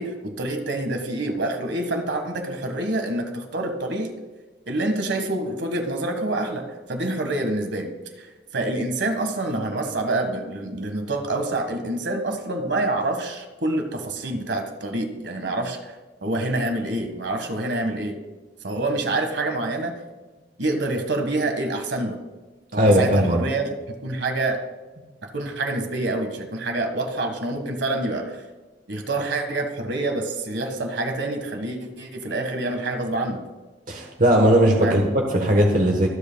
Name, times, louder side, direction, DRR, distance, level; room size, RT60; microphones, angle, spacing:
voice 1, 0.0-4.2 4.7-7.9 8.5-15.9 16.2-18.1 18.6-19.9 20.6-22.2 22.7-24.6 25.2-28.4 28.9-33.4 34.8-35.0, right 2 dB, 70° right, 5 dB, 1.6 m, -27 dB
voice 2, 22.8-23.4 33.9-36.1, right 1 dB, 45° right, 2 dB, 1.2 m, -18 dB
24.0 x 8.2 x 2.3 m, 1.2 s
head